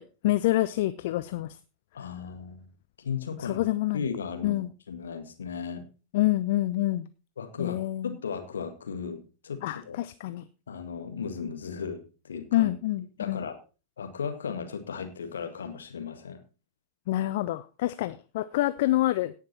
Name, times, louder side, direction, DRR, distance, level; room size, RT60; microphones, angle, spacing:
voice 1, 0.0-1.6 3.4-4.0 4.4-4.7 6.1-7.1 7.6-8.1 9.6-10.4 12.5-13.4 17.1-19.3, left 16 dB, 50° left, 13 dB, 0.5 m, -27 dB
voice 2, 1.9-2.7 3.0-3.7 3.9-5.9 7.4-10.0 10.7-12.7 13.2-13.6 14.0-16.4, left 6 dB, 70° left, 7 dB, 1.8 m, -36 dB
17.5 x 5.9 x 4.3 m, 0.33 s
figure-of-eight pair, 90°, 0 cm